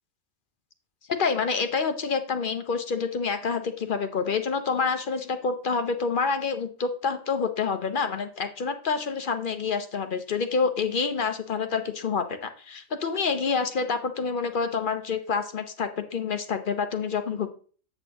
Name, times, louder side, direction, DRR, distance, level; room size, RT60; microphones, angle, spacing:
voice 1, 1.1-17.5, left 5 dB, 50° left, 8 dB, 0.7 m, -27 dB
8.1 x 7.9 x 2.9 m, 0.42 s
omnidirectional pair, 1.3 m